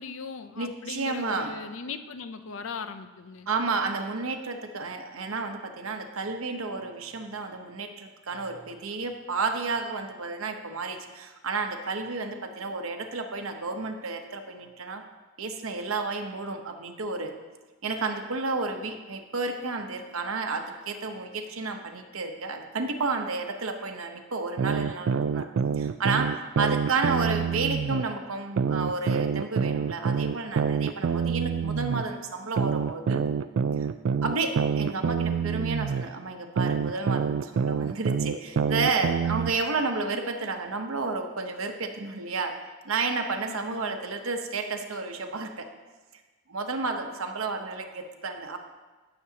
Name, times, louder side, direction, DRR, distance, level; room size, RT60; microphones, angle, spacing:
voice 1, 0.0-3.5 43.5-44.0, left 5 dB, 65° left, 10 dB, 0.5 m, -39 dB
voice 2, 0.6-1.5 3.5-15.0 15.4-17.3 17.8-25.5 25.8-33.2 33.8-33.9 34.2-42.5 42.8-45.7 46.5-48.6, right 3 dB, 80° right, 5 dB, 1.0 m, -31 dB
sound 1, 24.6-28.0 28.6-32.0 32.6-36.0 36.6-39.5, right 6 dB, 60° right, 0.3 m, -26 dB
17.0 x 7.0 x 2.8 m, 1.3 s
head